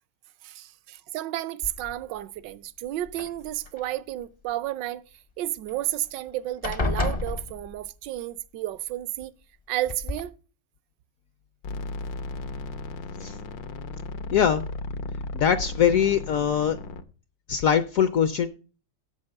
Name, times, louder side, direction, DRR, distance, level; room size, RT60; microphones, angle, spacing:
voice 1, 0.4-5.0 5.4-9.3 9.7-10.3, right 14 dB, 80° right, 1.3 m, -32 dB
sound 1, 1.6-2.2 3.0-3.9 5.7-5.8 6.1-6.3 6.6-8.1 9.2-9.3 9.9-10.2, left 2 dB, 40° left, 0.5 m, -31 dB
sound 2, 11.6-17.0, left 2 dB, 85° left, 1.6 m, -35 dB
voice 2, 14.3-14.6 15.3-16.8 17.5-18.5, left 8 dB, 70° left, 0.8 m, -22 dB
8.1 x 7.1 x 6.5 m
omnidirectional pair, 2.0 m